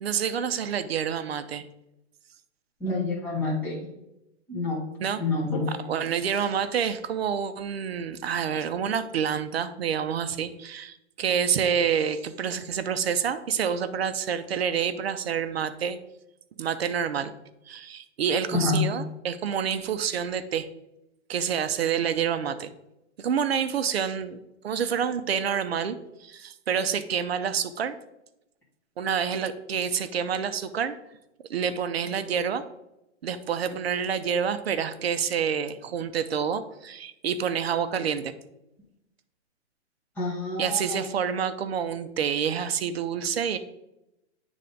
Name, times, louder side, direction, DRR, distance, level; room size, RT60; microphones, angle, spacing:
voice 1, 0.0-1.7 5.0-5.2 5.9-16.0 16.6-17.3 17.7-20.7 21.3-22.7 23.2-28.0 29.0-30.9 31.5-32.6 33.2-38.3 40.6-43.6, right 7 dB, 60° right, 11 dB, 0.6 m, -28 dB
voice 2, 2.8-3.8 4.5-4.8 5.2-5.6 18.5-18.8 40.2-41.0, left 3 dB, 5° left, -7 dB, 1.0 m, -27 dB
9.0 x 3.4 x 3.8 m, 0.90 s
hypercardioid pair, 170°, 36 cm